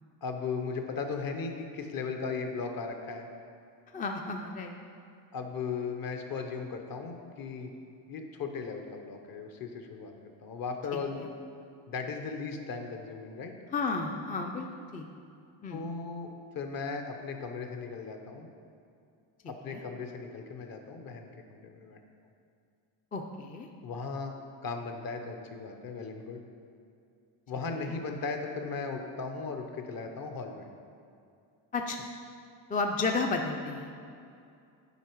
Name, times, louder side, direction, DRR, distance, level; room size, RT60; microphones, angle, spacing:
voice 1, 0.2-3.3 5.3-7.7 8.1-10.1 10.4-11.2 11.9-13.5 15.7-16.3 16.5-18.5 19.5-22.0 23.8-24.3 24.6-26.4 27.5-30.7, left 4 dB, 50° left, 5 dB, 0.9 m, -37 dB
voice 2, 3.9-4.8 11.2-11.3 13.7-14.7 14.9-15.1 15.6-15.8 19.7-19.8 23.1-23.7 27.8-27.9 31.7-32.1 32.7-34.0, left 3 dB, 20° left, 3 dB, 0.3 m, -32 dB
8.3 x 5.0 x 4.6 m, 2.4 s
cardioid pair, 115°, 46 cm